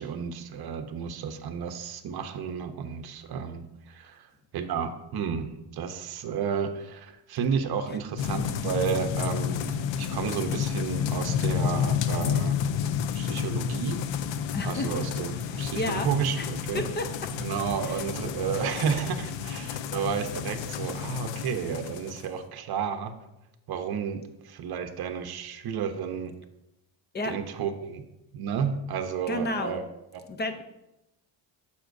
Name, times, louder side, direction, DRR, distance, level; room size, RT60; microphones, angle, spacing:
voice 1, 0.0-4.2 4.5-12.6 13.1-14.1 14.6-16.8 17.4-23.1 23.7-26.3 27.2-28.0 28.3-29.8 30.1-30.2, right 7 dB, 50° right, 7 dB, 0.9 m, -32 dB
sound 1, 8.2-22.3, left 8 dB, 70° left, 0.6 m, -30 dB
voice 2, 14.5-15.1 15.5-16.1 16.4-16.5 16.7-17.3 17.9-18.0 18.5-18.7 27.1-27.3 29.3-29.8 30.3-30.6, left 2 dB, 20° left, 8 dB, 0.6 m, -32 dB
9.8 x 7.1 x 2.6 m, 0.92 s
cardioid pair, 145°, 47 cm